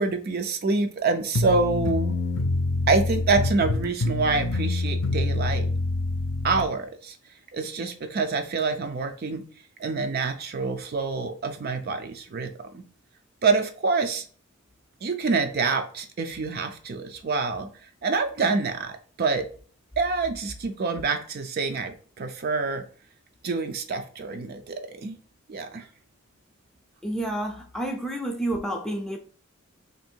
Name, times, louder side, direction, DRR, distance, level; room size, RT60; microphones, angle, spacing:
voice 1, 0.0-2.2 2.9-5.7 6.4-7.2 7.5-9.4 9.8-12.8 13.4-14.2 15.0-17.7 18.0-19.5 20.0-22.8 23.4-25.2 25.5-25.9, right 4 dB, 50° right, 0.4 m, -26 dB
sound 1, 1.3-6.7, left 2 dB, 65° left, 0.5 m, -26 dB
voice 2, 27.0-29.2, right 1 dB, 5° left, 0.5 m, -29 dB
3.0 x 2.6 x 4.3 m
head